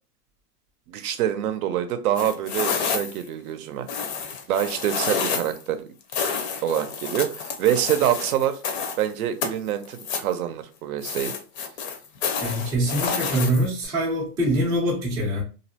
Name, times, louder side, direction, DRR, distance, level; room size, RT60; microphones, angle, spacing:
voice 1, 0.9-3.9 4.5-5.8 6.6-8.6 9.0-11.3, right 11 dB, 65° right, 0.6 m, -25 dB
sound 1, 2.1-3.3 3.9-5.6 6.1-9.0 9.4-10.3 11.0-13.8, left 6 dB, 45° left, 0.6 m, -29 dB
voice 2, 12.4-15.4, right 1 dB, 10° right, 0.4 m, -24 dB
2.6 x 2.0 x 2.7 m
hypercardioid pair, 135°, 47 cm